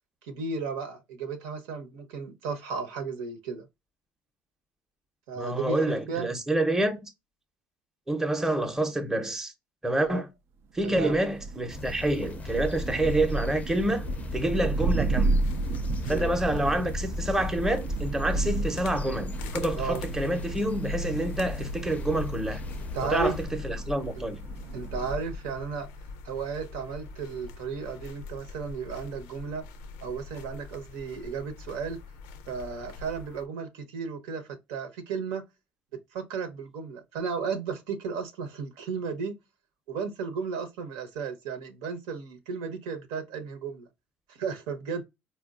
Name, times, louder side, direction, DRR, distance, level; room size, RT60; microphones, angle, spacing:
voice 1, 0.2-3.7 5.3-5.8 6.1-6.3 10.1-10.2 10.8-11.2 16.1-16.3 19.7-20.0 22.9-23.4 24.2-24.3 24.7-25.9 26.2-29.7 30.0-32.0 32.5-35.4 35.9-39.3 39.9-43.9 44.3-45.0, right 5 dB, 85° right, 0.9 m, -34 dB
voice 2, 5.4-7.1 8.1-9.5 9.8-10.3 10.7-14.0 14.3-15.4 16.1-22.6 23.1-24.4, right 1 dB, 10° right, 0.7 m, -28 dB
Thunder, 10.8-25.4, right 3 dB, 55° right, 0.3 m, -33 dB
sound 1, 11.7-23.5, left 4 dB, 30° left, 0.5 m, -39 dB
sound 2, 13.8-33.4, left 3 dB, 85° left, 0.5 m, -41 dB
4.2 x 2.3 x 2.4 m
supercardioid pair, 95°, 5 cm